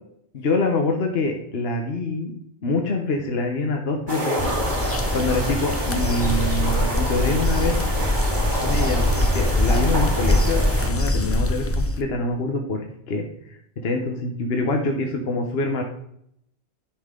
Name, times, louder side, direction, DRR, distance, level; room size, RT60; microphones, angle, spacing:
voice 1, 0.3-2.3 2.6-4.5 5.1-7.8 8.6-9.0 9.3-13.2 13.8-15.8, left 2 dB, 65° left, 3 dB, 1.3 m, -25 dB
sound 1, 4.1-10.9, right 1 dB, 45° right, 1.8 m, -28 dB
sound 2, 4.4-12.0, left 1 dB, 25° left, 0.3 m, -23 dB
11.5 x 5.6 x 3.8 m, 0.71 s
omnidirectional pair, 1.1 m